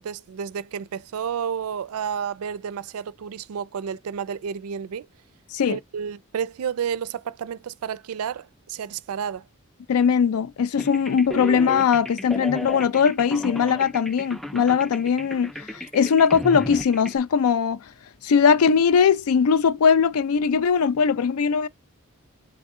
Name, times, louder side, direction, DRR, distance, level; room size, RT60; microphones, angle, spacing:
voice 1, 0.0-5.1 5.7-9.5 16.0-16.1, right 7 dB, 85° right, 0.4 m, -31 dB
voice 2, 9.9-17.8 18.2-21.7, left 6 dB, 90° left, 0.4 m, -20 dB
sound 1, 10.8-17.2, equal, ahead, 0.3 m, -34 dB
3.6 x 3.4 x 3.6 m
head